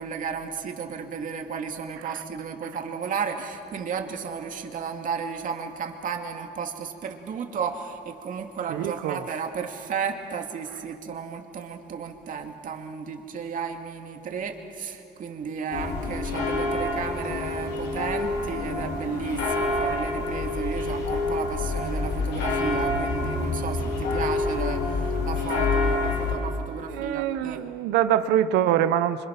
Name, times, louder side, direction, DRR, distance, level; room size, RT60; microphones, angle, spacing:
voice 1, 0.0-27.6, right 6 dB, 50° right, 4 dB, 2.4 m, -33 dB
voice 2, 8.7-9.3 26.9-29.3, right 11 dB, 85° right, 12 dB, 1.0 m, -24 dB
sound 1, 15.7-26.4, left 3 dB, 85° left, 4.1 m, -27 dB
26.0 x 25.0 x 6.0 m, 2.6 s
cardioid pair, 110°, 17 cm